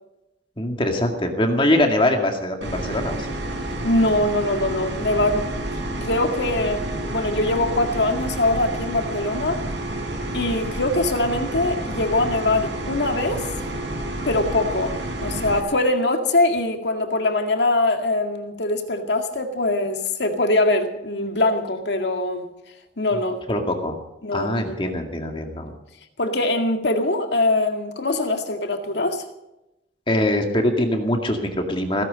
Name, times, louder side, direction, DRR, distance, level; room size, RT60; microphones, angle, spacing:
voice 1, 0.6-3.4 23.5-24.0 24.3-25.7 30.1-32.0, left 1 dB, 30° left, 3 dB, 2.1 m, -23 dB
sound 1, 2.6-15.6, right 1 dB, 85° right, 5.0 m, -29 dB
voice 2, 3.8-5.5 6.0-9.7 10.3-13.5 14.2-22.5 23.0-23.4 24.2-24.9 26.2-29.2, left 2 dB, 70° left, 5 dB, 2.0 m, -22 dB
17.0 x 16.0 x 5.3 m, 0.91 s
head